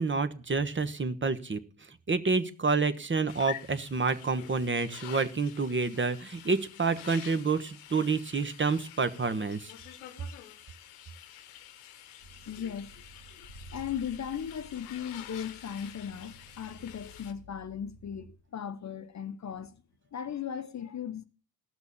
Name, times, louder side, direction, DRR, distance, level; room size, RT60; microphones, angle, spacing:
voice 1, 0.0-1.6 2.1-9.7, right 4 dB, 25° right, 1.2 m, -28 dB
sound 1, 3.3-17.3, left 12 dB, 90° left, 1.1 m, -48 dB
sound 2, 12.2-18.3, right 1 dB, 90° right, 2.8 m, -53 dB
voice 2, 12.5-12.9 13.4-19.8 20.1-21.2, left 8 dB, 40° left, 0.9 m, -37 dB
15.5 x 6.2 x 7.1 m
supercardioid pair, 60°, 44 cm